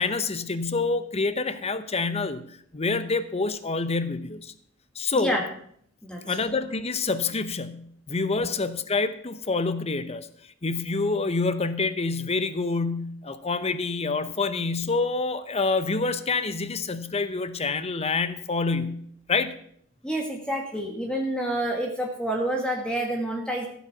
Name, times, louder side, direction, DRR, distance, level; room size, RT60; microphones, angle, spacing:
voice 1, 0.0-2.4 2.7-4.5 5.0-5.4 6.2-10.3 10.6-19.5, left 3 dB, 30° left, 12 dB, 0.8 m, -27 dB
voice 2, 6.0-6.4 8.4-8.5 20.0-23.7, right 1 dB, 5° left, 0 dB, 1.5 m, -28 dB
15.5 x 7.3 x 5.9 m, 0.65 s
head